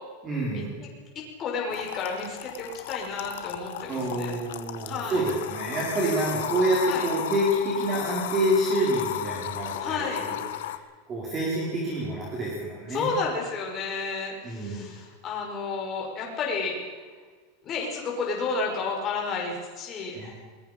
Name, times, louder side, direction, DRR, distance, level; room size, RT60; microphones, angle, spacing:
voice 1, 0.2-0.8 3.9-10.4 10.7-10.8 11.1-13.1 14.4-14.9 20.1-20.3, right 1 dB, 20° right, -5 dB, 5.4 m, -27 dB
voice 2, 1.4-4.3 4.8-5.2 6.9-7.1 9.8-10.2 12.9-16.8 17.6-20.3, left 4 dB, 25° left, -1 dB, 5.5 m, -31 dB
sound 1, 1.7-10.8, left 12 dB, 75° left, 1.6 m, -35 dB
23.5 x 21.5 x 5.5 m, 1.5 s
supercardioid pair, 170°, 0 cm